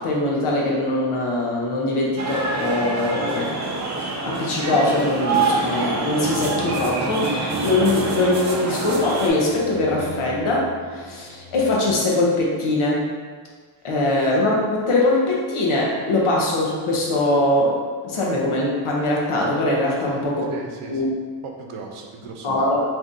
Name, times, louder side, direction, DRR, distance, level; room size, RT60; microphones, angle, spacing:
voice 1, 0.0-3.7 4.2-13.1 13.8-20.5 20.9-21.1 22.4-22.8, left 2 dB, 80° left, -3 dB, 0.9 m, -22 dB
sound 1, 2.2-9.3, right 3 dB, 35° right, 0.4 m, -26 dB
sound 2, 6.2-11.7, equal, 5° left, 1.1 m, -37 dB
voice 2, 20.1-21.1 21.4-22.7, right 4 dB, 90° right, 1 dB, 0.6 m, -37 dB
2.7 x 2.6 x 3.6 m, 1.6 s
wide cardioid pair, 155°, 49 cm